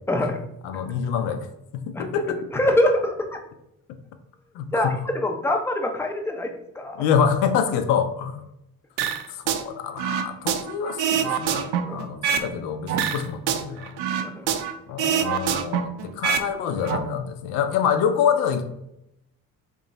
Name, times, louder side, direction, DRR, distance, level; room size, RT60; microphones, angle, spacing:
voice 1, 0.1-0.4 0.7-0.8 2.0-2.1 2.5-3.4 4.7-7.1 11.8-12.0 14.2-14.5, left 1 dB, 5° left, 3 dB, 0.5 m, -24 dB
voice 2, 0.6-1.5 1.7-2.5 4.5-5.0 7.0-8.4 9.3-13.9 14.9-18.7, left 7 dB, 65° left, 8 dB, 0.6 m, -26 dB
sound 1, 9.0-9.6 10.0-12.5 12.9-14.7 15.0-16.5 16.7-17.0, right 8 dB, 60° right, 0.5 m, -25 dB
3.0 x 2.2 x 3.8 m, 0.82 s
hypercardioid pair, 50°, 45 cm